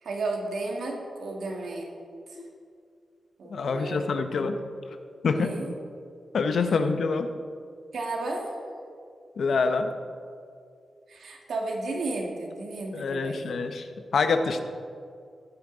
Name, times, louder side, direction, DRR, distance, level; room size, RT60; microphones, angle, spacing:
voice 1, 0.0-1.9 2.3-2.4 3.4-4.6 5.4-5.7 7.9-8.5 11.1-13.5, right 2 dB, 80° right, 0 dB, 2.0 m, -33 dB
voice 2, 3.5-4.6 5.2-5.6 6.3-7.3 9.4-9.9 12.9-13.9 14.1-14.6, left 4 dB, 75° left, 8 dB, 0.8 m, -26 dB
15.5 x 9.5 x 4.0 m, 2.3 s
cardioid pair, 65°, 0 cm